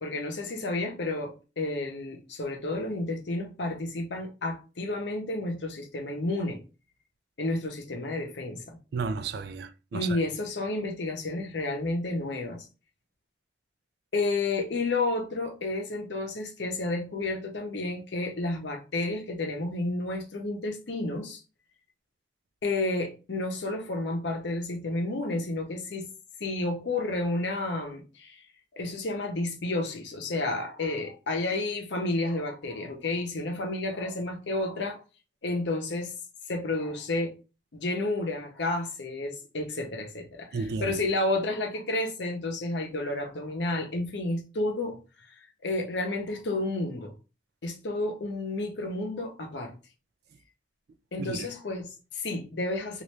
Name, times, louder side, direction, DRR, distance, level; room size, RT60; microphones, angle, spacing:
voice 1, 0.0-6.6 7.4-8.8 9.9-12.7 14.1-21.4 22.6-26.1 26.4-28.4 28.7-35.0 35.4-36.1 36.5-37.4 37.7-40.5 40.8-45.0 45.6-47.1 47.6-49.7 51.1-53.0, left 2 dB, 70° left, 0.7 m, -31 dB
voice 2, 8.9-10.2 40.5-41.0 51.2-51.5, right 4 dB, 55° right, 0.3 m, -33 dB
3.0 x 2.5 x 3.2 m
head